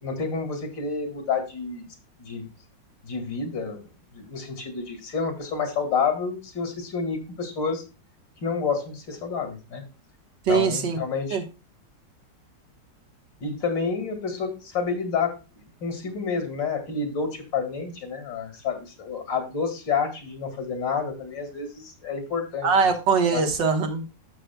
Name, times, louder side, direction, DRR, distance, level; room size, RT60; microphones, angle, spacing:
voice 1, 0.0-1.9 2.2-2.5 3.0-3.8 4.1-7.8 8.4-9.8 10.5-11.4 13.4-15.4 15.8-22.7 23.3-23.4, left 5 dB, 75° left, 2.9 m, -29 dB
voice 2, 10.5-11.0 11.3-11.4 22.6-24.0, right 5 dB, 75° right, 2.1 m, -22 dB
12.5 x 6.8 x 2.2 m
omnidirectional pair, 2.0 m